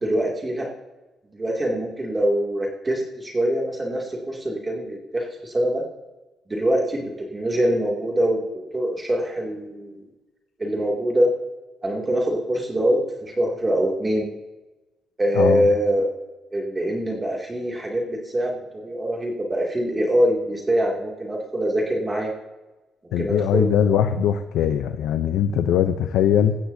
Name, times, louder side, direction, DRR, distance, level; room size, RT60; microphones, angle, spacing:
voice 1, 0.0-0.7 1.3-5.8 6.5-10.1 10.6-11.3 11.8-14.3 15.2-16.1 16.5-22.3 23.2-24.0, right 1 dB, 20° right, -1 dB, 2.4 m, -24 dB
voice 2, 23.1-26.6, left 9 dB, 85° left, 9 dB, 0.6 m, -21 dB
16.5 x 13.0 x 2.7 m, 1.1 s
cardioid pair, 90°, 0 cm